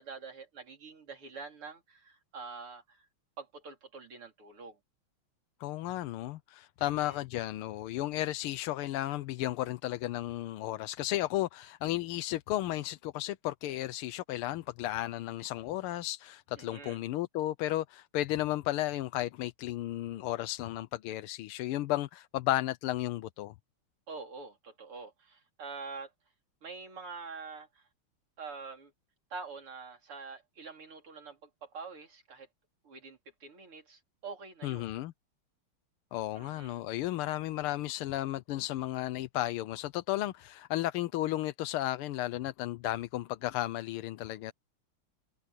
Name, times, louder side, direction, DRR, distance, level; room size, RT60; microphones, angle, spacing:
voice 1, 0.0-3.1 3.4-4.8 6.8-7.2 16.6-17.0 24.1-26.1 26.6-27.9 28.4-28.9 29.3-32.5 32.8-34.9 36.4-36.8, right 4 dB, 90° right, 4.4 m, -46 dB
voice 2, 5.6-23.5 34.6-35.1 36.1-44.5, left 14 dB, 90° left, 1.6 m, -34 dB
omnidirectional pair, 2.3 m